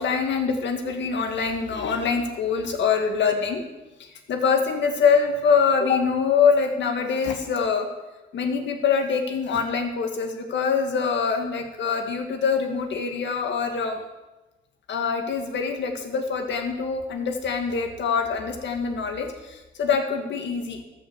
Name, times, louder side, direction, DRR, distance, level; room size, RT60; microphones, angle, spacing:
voice 1, 0.0-3.6 4.3-7.9 8.3-14.0 14.9-20.8, left 5 dB, 65° left, 4 dB, 1.7 m, -24 dB
13.5 x 5.7 x 6.7 m, 1.1 s
cardioid pair, 90°, 20 cm